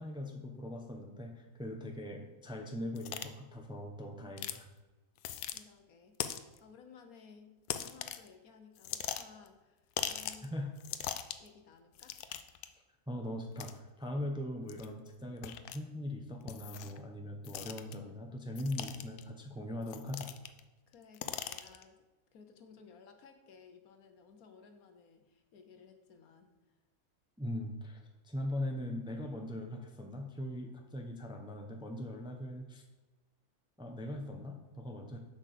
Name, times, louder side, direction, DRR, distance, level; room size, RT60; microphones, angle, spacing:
voice 1, 0.0-4.7 10.5-10.7 13.1-20.3 27.4-32.8 33.8-35.2, left 1 dB, 5° right, 2 dB, 0.8 m, -40 dB
sound 1, 3.0-3.3 4.4-4.6 5.2-5.6 6.2-6.6 7.7-8.3 8.8-9.5 10.0-10.5 10.8-11.5 12.0-12.7 13.6-13.7 14.7-14.9 15.4-15.8 16.5-17.0 17.4-17.9 18.6-19.2 19.9-20.6 20.9-21.8, left 10 dB, 90° left, 1.1 m, -40 dB
voice 2, 5.5-7.5 7.8-10.6 11.4-12.2 20.9-22.0 22.3-26.5, left 5 dB, 70° left, 6 dB, 1.4 m, -58 dB
7.4 x 6.2 x 6.7 m, 1.2 s
omnidirectional pair, 1.6 m